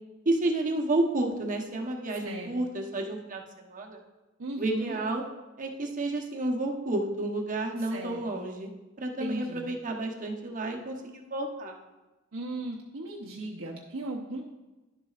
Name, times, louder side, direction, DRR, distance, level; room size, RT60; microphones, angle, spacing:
voice 1, 0.2-4.0 4.6-5.2 5.6-8.7 9.0-11.8, right 2 dB, 40° right, 1 dB, 1.0 m, -30 dB
voice 2, 4.4-5.0 7.9-8.2 9.2-9.7 12.3-14.4, right 2 dB, 75° right, -3 dB, 0.8 m, -36 dB
11.0 x 7.4 x 2.4 m, 1.1 s
head